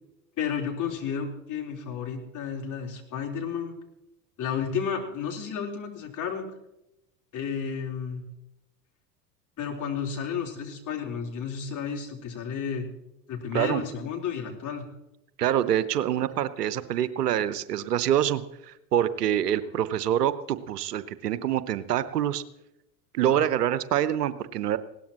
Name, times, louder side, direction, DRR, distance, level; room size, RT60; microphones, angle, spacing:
voice 1, 0.4-3.7 4.4-6.5 7.3-8.2 9.6-12.9 13.3-14.9 23.3-23.5, left 7 dB, 40° left, 0 dB, 4.1 m, -32 dB
voice 2, 15.4-22.4 23.1-24.8, right 10 dB, 75° right, 14 dB, 1.0 m, -26 dB
20.0 x 17.5 x 3.0 m, 0.88 s
figure-of-eight pair, 80°, 48 cm